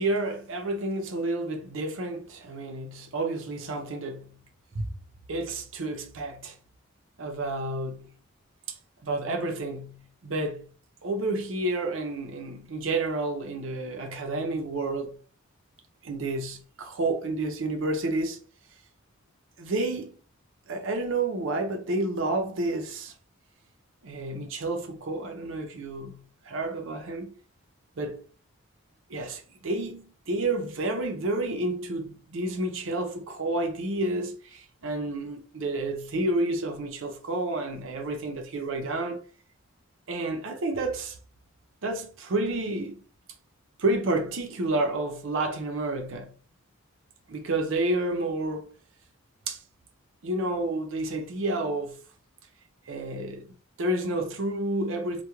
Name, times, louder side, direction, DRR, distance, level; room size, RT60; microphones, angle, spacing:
voice 1, 0.0-4.3 4.7-4.9 5.3-6.5 7.2-8.1 8.7-8.8 9.0-10.7 11.0-15.1 16.0-18.4 19.6-20.1 20.7-23.1 24.0-26.2 26.5-27.3 28.0-28.2 29.1-39.2 40.1-41.2 41.8-43.0 43.8-46.3 47.3-48.7 49.5-49.6 50.2-52.0 52.9-53.4 53.8-55.2, right 2 dB, 65° right, 0.5 m, -30 dB
2.3 x 2.2 x 2.9 m
head